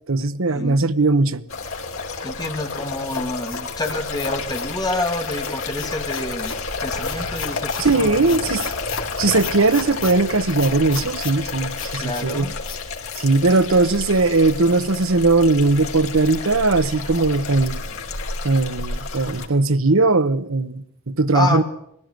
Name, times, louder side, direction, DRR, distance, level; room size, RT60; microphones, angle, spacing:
voice 1, 0.1-1.4 7.8-8.7 9.2-12.5 13.2-17.8 18.4-21.6, right 3 dB, 75° right, 1.0 m, -19 dB
sound 1, 1.5-19.5, left 4 dB, 90° left, 3.2 m, -30 dB
voice 2, 2.2-6.6 6.8-8.6 12.0-12.6 13.7-13.8 21.3-21.6, left 2 dB, 20° left, 2.3 m, -28 dB
sound 2, 2.8-4.7 5.4-6.6 7.0-7.9 8.2-9.1 9.4-10.1 10.6-11.4 11.7-12.2 12.6-12.8 13.1-13.2, left 7 dB, 70° left, 2.6 m, -35 dB
20.0 x 15.5 x 9.3 m
head